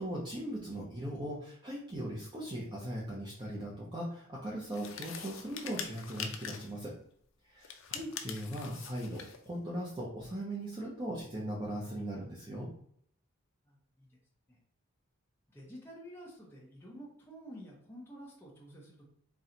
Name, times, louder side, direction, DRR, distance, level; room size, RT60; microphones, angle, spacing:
voice 1, 0.0-6.9 7.5-12.7, right 1 dB, 20° right, -4 dB, 0.6 m, -39 dB
sound 1, 4.7-6.8 7.6-9.4, left 7 dB, 60° left, 0.5 m, -43 dB
voice 2, 13.6-14.2 14.5-14.6 15.5-19.0, equal, 10° left, -4 dB, 0.8 m, -50 dB
4.2 x 2.3 x 3.8 m, 0.66 s
head